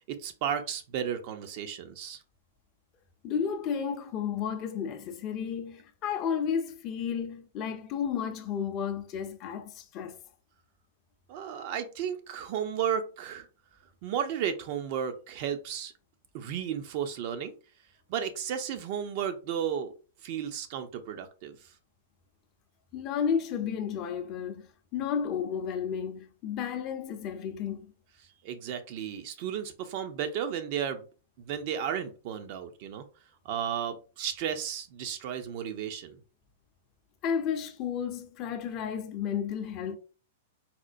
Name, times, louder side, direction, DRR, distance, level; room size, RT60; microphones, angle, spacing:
voice 1, 0.1-2.2 11.3-13.5 14.0-15.9 16.3-17.5 18.1-19.9 20.2-21.6 28.4-31.0 31.4-33.0 33.4-36.2, right 8 dB, 50° right, 0.5 m, -33 dB
voice 2, 3.2-10.2 22.9-27.9 37.2-40.0, left 7 dB, 40° left, 0.5 m, -32 dB
4.2 x 2.1 x 2.5 m
figure-of-eight pair, 105°, 0 cm